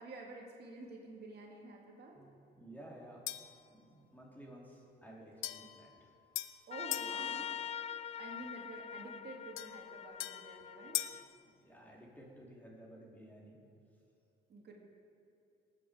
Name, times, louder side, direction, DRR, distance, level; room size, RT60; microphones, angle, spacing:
voice 1, 0.0-2.2 6.7-11.0 14.5-14.7, right 2 dB, 55° right, -1 dB, 2.3 m, -50 dB
voice 2, 2.1-3.2 3.7-6.1 11.6-13.6, right 1 dB, 10° left, -3 dB, 2.9 m, -54 dB
sound 1, 3.3-3.6 5.4-7.2 9.6-11.3, left 14 dB, 85° left, 0.5 m, -41 dB
Trumpet, 6.7-11.3, left 8 dB, 35° left, 0.3 m, -43 dB
19.0 x 8.3 x 5.0 m, 2.7 s
cardioid pair, 90°, 20 cm